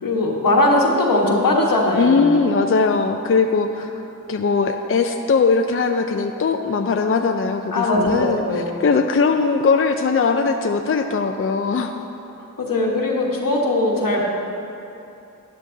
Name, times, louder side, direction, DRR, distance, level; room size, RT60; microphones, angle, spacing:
voice 1, 0.0-2.4 7.7-8.8 12.4-14.2, left 1 dB, 80° left, -1 dB, 1.3 m, -20 dB
voice 2, 2.0-3.9 4.3-12.1, left 4 dB, 40° left, 6 dB, 0.5 m, -20 dB
12.0 x 9.9 x 2.7 m, 2.8 s
cardioid pair, 50°, 33 cm